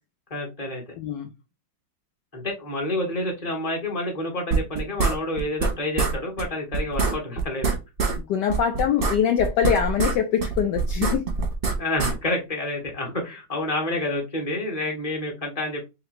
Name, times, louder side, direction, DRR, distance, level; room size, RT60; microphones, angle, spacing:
voice 1, 0.3-0.9 2.3-7.7 11.8-15.8, left 1 dB, 20° left, 1.5 m, -29 dB
voice 2, 1.0-1.3 8.2-11.2, left 8 dB, 75° left, 1.1 m, -23 dB
sound 1, 4.5-5.7 6.0-6.1 6.4-6.5 6.7-8.2 8.5-10.2 10.4-12.1, right 4 dB, 35° right, 0.9 m, -24 dB
3.8 x 3.2 x 3.1 m
omnidirectional pair, 2.2 m